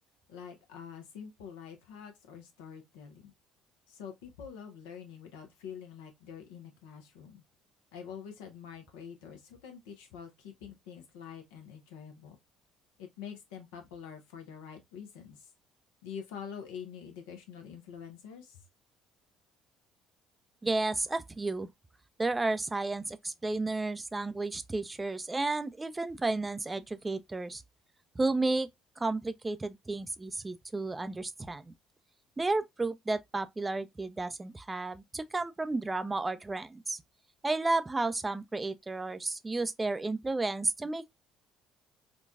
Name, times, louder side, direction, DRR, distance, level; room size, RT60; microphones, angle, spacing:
voice 1, 0.3-3.3 3.9-7.4 7.9-12.4 13.0-15.5 16.0-18.6, left 7 dB, 80° left, 0.8 m, -46 dB
voice 2, 20.6-21.7 22.2-27.6 28.2-28.7 29.0-31.7 32.4-37.0 37.4-41.1, right 3 dB, 20° right, 0.4 m, -32 dB
3.9 x 2.3 x 2.3 m
hypercardioid pair, 60°, 0 cm